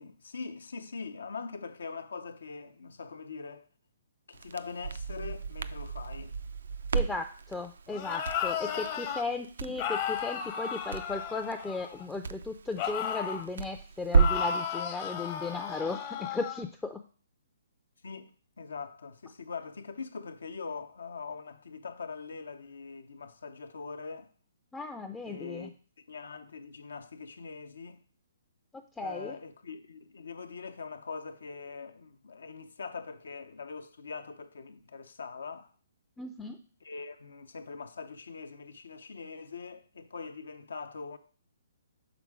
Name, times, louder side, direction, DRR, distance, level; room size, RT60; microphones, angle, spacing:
voice 1, 0.0-3.7 4.3-6.3 8.6-8.9 18.0-24.3 25.3-25.7 26.1-28.0 29.0-35.7 36.8-41.2, left 4 dB, 75° left, 0.6 m, -42 dB
Crackle, 4.3-14.6, right 5 dB, 70° right, 0.3 m, -33 dB
voice 2, 6.9-17.0 24.7-25.7 28.7-29.4 36.2-36.6, left 3 dB, 10° left, 0.4 m, -36 dB
sound 1, 7.9-9.2 9.8-12.1 12.8-13.5 14.1-16.6, left 7 dB, 40° left, 0.7 m, -34 dB
6.0 x 3.7 x 4.6 m
hypercardioid pair, 135°, 0 cm